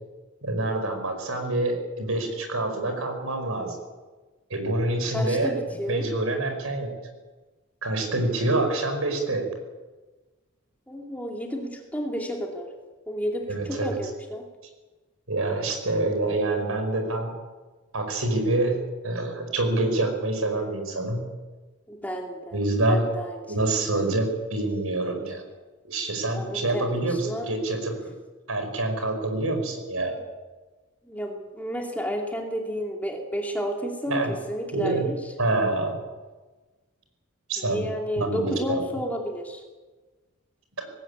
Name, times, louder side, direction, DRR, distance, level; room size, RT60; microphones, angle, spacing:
voice 1, 0.4-3.8 4.5-5.5 5.9-6.9 7.8-9.5 13.5-14.0 15.3-17.3 17.9-21.2 22.5-23.0 23.5-25.4 25.8-27.9 28.5-30.2 34.1-34.3 34.7-35.1 35.4-35.9 37.5-37.9 38.2-38.8, right 2 dB, 85° right, 5 dB, 5.3 m, -26 dB
voice 2, 5.1-6.1 10.9-12.7 13.1-14.4 21.9-22.6 22.9-24.1 26.3-27.5 31.0-35.2 37.6-39.6, equal, 5° left, 1 dB, 2.6 m, -31 dB
19.0 x 17.0 x 8.6 m, 1.3 s
head